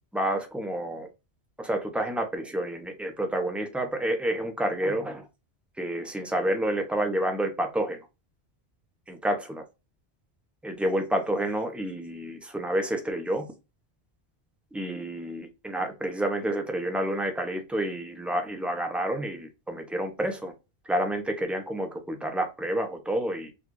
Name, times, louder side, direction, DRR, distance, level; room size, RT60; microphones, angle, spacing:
voice 1, 0.1-1.1 1.6-5.3 5.8-8.0 9.1-9.6 10.6-13.5 14.7-20.5 20.9-23.5, right 1 dB, ahead, 0.4 m, -29 dB
4.0 x 2.4 x 2.9 m
omnidirectional pair, 1.1 m